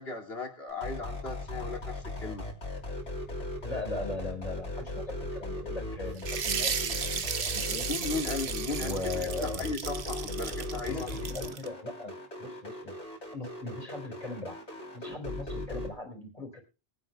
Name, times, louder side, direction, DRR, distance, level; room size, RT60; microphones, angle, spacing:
voice 1, 0.0-2.5 7.9-11.1, left 3 dB, 60° left, 1 dB, 2.5 m, -36 dB
sound 1, 0.7-15.9, left 1 dB, 80° left, 3.5 m, -37 dB
voice 2, 3.6-7.9 8.8-9.6 10.8-13.0 13.3-14.6 14.9-16.6, left 2 dB, 30° left, 2 dB, 4.1 m, -39 dB
sound 2, 6.2-11.7, right 6 dB, 65° right, 1.2 m, -34 dB
22.5 x 10.0 x 2.2 m, 0.32 s
omnidirectional pair, 1.2 m